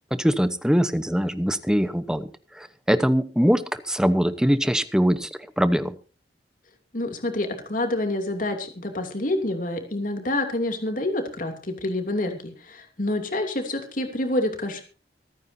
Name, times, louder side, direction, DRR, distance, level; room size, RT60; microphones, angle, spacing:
voice 1, 0.2-2.3 2.5-5.3 5.6-6.0, equal, 5° right, 12 dB, 0.9 m, -22 dB
voice 2, 6.9-14.8, left 1 dB, 50° left, 5 dB, 2.8 m, -27 dB
25.0 x 9.4 x 2.7 m, 0.36 s
head